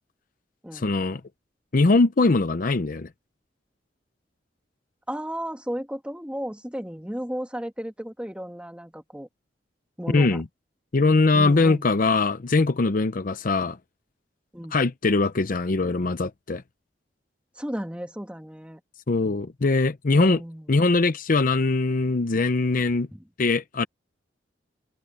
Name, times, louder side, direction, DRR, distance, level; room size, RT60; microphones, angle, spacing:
voice 1, 0.7-1.2 1.7-3.1 10.1-10.4 10.9-13.8 14.7-16.6 19.1-20.4 20.7-23.1 23.4-23.8, left 3 dB, 50° left, 0.6 m, -21 dB
voice 2, 5.1-9.3 10.0-10.4 11.3-11.9 14.5-14.8 17.6-18.8 20.1-20.8 23.1-23.2, equal, 5° right, 2.1 m, -34 dB
head